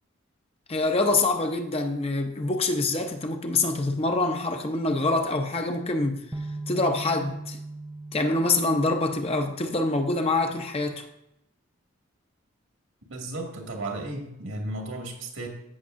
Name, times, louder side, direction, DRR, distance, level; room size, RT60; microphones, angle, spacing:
voice 1, 0.7-6.2 6.7-7.6 8.1-11.1, left 2 dB, 30° left, 5 dB, 0.7 m, -25 dB
sound 1, 6.3-10.3, right 2 dB, 10° right, 0.3 m, -39 dB
voice 2, 13.1-15.5, right 2 dB, 75° right, 1 dB, 2.0 m, -34 dB
15.0 x 6.5 x 2.6 m, 0.83 s
head